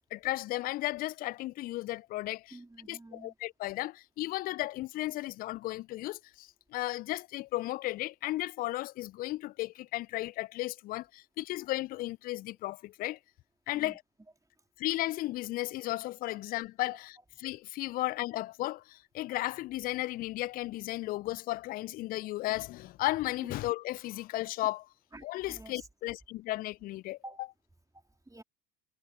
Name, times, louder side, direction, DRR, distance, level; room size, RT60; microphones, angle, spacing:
voice 1, 0.0-2.6 2.9-13.2 13.7-14.0 14.8-24.8 25.2-27.2, left 17 dB, 20° left, 0.3 m, -35 dB
voice 2, 2.5-3.3 13.7-14.0 23.4-23.5 25.1-25.9 27.2-27.4 27.9-28.4, right 2 dB, 5° right, 3.0 m, -49 dB
figure-of-eight pair, 75°, 49 cm